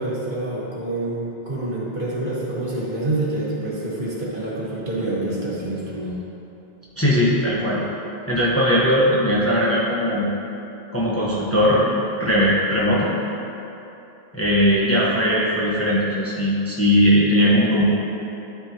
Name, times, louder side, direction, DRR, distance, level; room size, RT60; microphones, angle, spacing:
voice 1, 0.0-6.1, right 2 dB, 55° right, -6 dB, 1.5 m, -27 dB
voice 2, 7.0-7.8 8.3-10.3 10.9-11.9 12.2-13.1 14.3-17.8, equal, 15° left, -7 dB, 0.9 m, -19 dB
11.5 x 4.3 x 2.9 m, 2.9 s
omnidirectional pair, 1.1 m